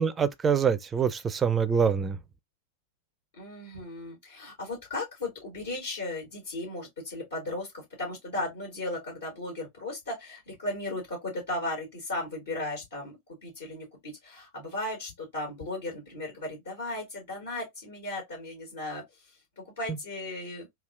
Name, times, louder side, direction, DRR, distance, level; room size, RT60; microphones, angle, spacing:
voice 1, 0.0-2.2, right 6 dB, 20° right, 0.4 m, -25 dB
voice 2, 3.4-13.2 13.4-19.0 19.6-20.7, left 2 dB, 65° left, 1.9 m, -36 dB
3.5 x 2.4 x 3.5 m
figure-of-eight pair, 90°, 0 cm